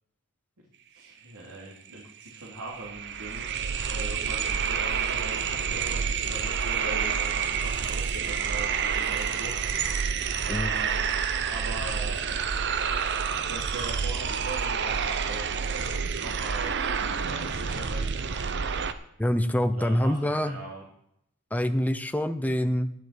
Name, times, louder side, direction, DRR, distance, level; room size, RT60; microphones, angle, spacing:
voice 1, 0.9-3.5 3.9-9.5 10.4-11.0 11.4-12.7 13.5-18.7 19.7-20.8, right 2 dB, 80° right, -3 dB, 2.7 m, -41 dB
sound 1, 1.9-2.0 2.3-18.9, right 6 dB, 50° right, 0.7 m, -28 dB
voice 2, 19.2-20.6 21.5-22.9, equal, 5° left, 8 dB, 0.7 m, -25 dB
11.0 x 7.6 x 8.1 m, 0.75 s
head